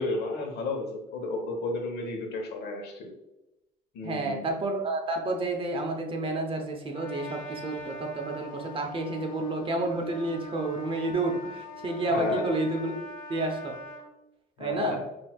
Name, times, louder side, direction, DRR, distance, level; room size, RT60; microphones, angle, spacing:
voice 1, 0.0-3.1 3.9-4.4 12.1-12.4 14.6-15.1, left 3 dB, 75° left, 2 dB, 1.1 m, -32 dB
voice 2, 4.0-13.0 13.3-13.8 14.6-15.0, right 2 dB, 30° right, 2 dB, 0.8 m, -30 dB
Trumpet, 6.9-14.1, equal, 45° left, 1.0 m, -42 dB
6.0 x 2.7 x 2.3 m, 0.93 s
cardioid pair, 110°, 17 cm